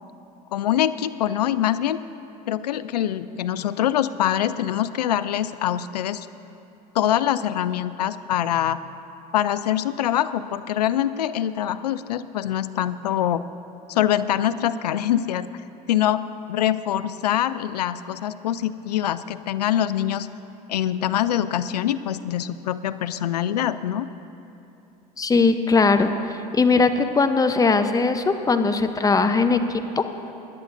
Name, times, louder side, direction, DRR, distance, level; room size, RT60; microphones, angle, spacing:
voice 1, 0.5-2.0 2.5-6.3 6.9-8.8 9.3-13.4 13.9-15.5 15.9-16.2 16.5-20.3 20.7-24.1, left 11 dB, 85° left, 14 dB, 0.4 m, -24 dB
voice 2, 25.2-26.1 26.5-30.0, left 4 dB, 20° left, 8 dB, 0.7 m, -19 dB
21.0 x 11.0 x 2.6 m, 2.8 s
hypercardioid pair, 80°, 20 cm